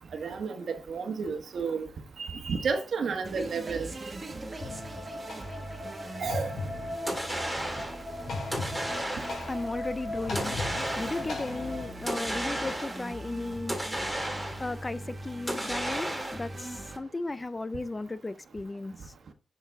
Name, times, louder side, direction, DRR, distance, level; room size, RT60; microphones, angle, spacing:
voice 1, 0.1-1.9 2.2-3.9 6.2-6.5, right 5 dB, 70° right, 1.2 m, -31 dB
sound 1, 3.2-17.0, right 2 dB, 30° right, 1.5 m, -41 dB
sound 2, 4.6-11.9, left 2 dB, 75° left, 3.3 m, -37 dB
voice 2, 5.8-6.2 6.9-9.2 9.5-14.2 14.6-19.1, left 2 dB, 20° left, 0.4 m, -37 dB
sound 3, 7.1-8.0 8.5-9.6 10.3-11.4 12.1-13.1 13.7-14.8 15.5-16.6, right 1 dB, ahead, 2.1 m, -33 dB
6.9 x 6.8 x 3.5 m
wide cardioid pair, 120°, 0 cm